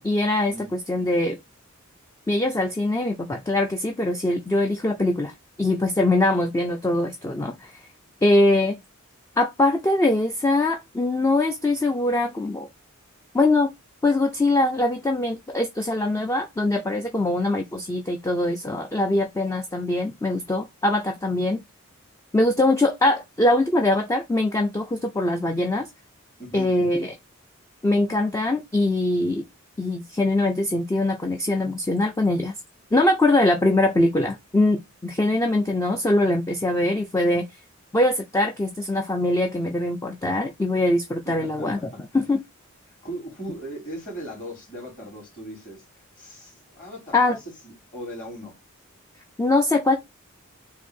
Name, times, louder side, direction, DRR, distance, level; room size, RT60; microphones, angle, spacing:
voice 1, 0.0-1.4 2.3-7.8 8.2-8.8 9.4-12.7 13.3-13.7 14.0-21.6 22.3-25.9 26.5-27.1 27.8-29.4 29.8-32.6 32.9-37.5 37.9-41.8 42.1-42.4 47.1-47.4 49.4-49.9, left 2 dB, 15° left, 0.3 m, -22 dB
voice 2, 26.4-26.7 41.2-42.0 43.0-47.4 47.6-48.6, right 1 dB, 35° left, 2.3 m, -38 dB
4.3 x 2.6 x 3.5 m
head